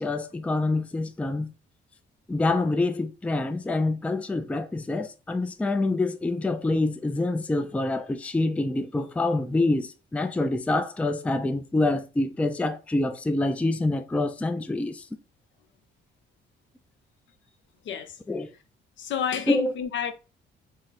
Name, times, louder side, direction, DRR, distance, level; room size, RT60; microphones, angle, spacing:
voice 1, 0.0-1.5 2.3-15.1 18.3-18.5 19.5-19.7, left 2 dB, 5° left, 0.3 m, -26 dB
voice 2, 17.8-18.2 19.0-20.1, left 8 dB, 70° left, 0.6 m, -30 dB
3.7 x 2.0 x 4.1 m
cardioid pair, 90°, 20 cm